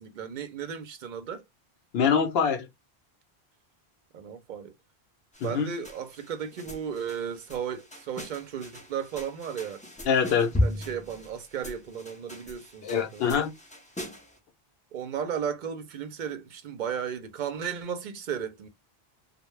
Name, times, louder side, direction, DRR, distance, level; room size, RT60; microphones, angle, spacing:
voice 1, 0.0-1.4 4.1-4.7 5.4-9.8 10.6-13.3 14.9-18.7, right 7 dB, 55° right, 0.6 m, -35 dB
voice 2, 1.9-2.7 5.4-5.7 10.1-10.5 12.8-13.5, left 7 dB, 75° left, 0.8 m, -24 dB
sound 1, 5.3-14.4, left 1 dB, 10° left, 0.3 m, -36 dB
2.2 x 2.0 x 3.0 m
omnidirectional pair, 1.1 m